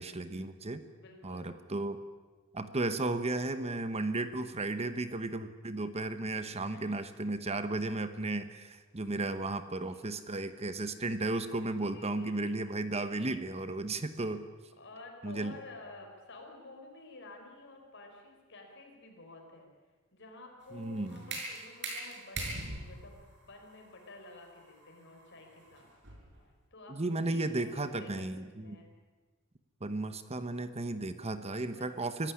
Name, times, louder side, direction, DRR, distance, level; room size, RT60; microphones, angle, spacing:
voice 1, 0.0-0.8 1.2-2.0 2.5-14.5 15.2-15.5 20.7-21.3 26.9-28.8 29.8-32.3, right 2 dB, 30° right, 11 dB, 1.1 m, -34 dB
voice 2, 0.9-1.5 6.4-7.0 9.4-9.6 9.9-10.0 11.9-12.6 14.8-19.7 20.1-22.5 22.8-25.8 26.7-28.3 28.6-28.9 31.7-32.3, left 2 dB, 55° left, 2 dB, 5.5 m, -51 dB
sound 1, 20.6-26.4, right 2 dB, 55° right, 6.5 m, -42 dB
25.5 x 15.5 x 10.0 m, 1.3 s
head